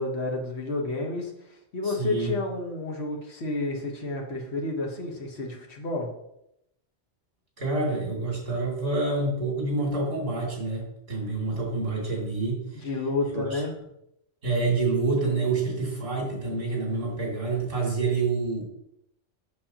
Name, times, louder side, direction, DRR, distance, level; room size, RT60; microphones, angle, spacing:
voice 1, 0.0-1.3 1.7-6.1 12.8-13.7, left 2 dB, 65° left, 1 dB, 1.5 m, -30 dB
voice 2, 1.8-2.3 7.6-12.9 13.3-13.6 14.4-18.6, right 3 dB, 50° right, -4 dB, 2.8 m, -27 dB
7.7 x 6.4 x 2.9 m, 0.80 s
omnidirectional pair, 1.2 m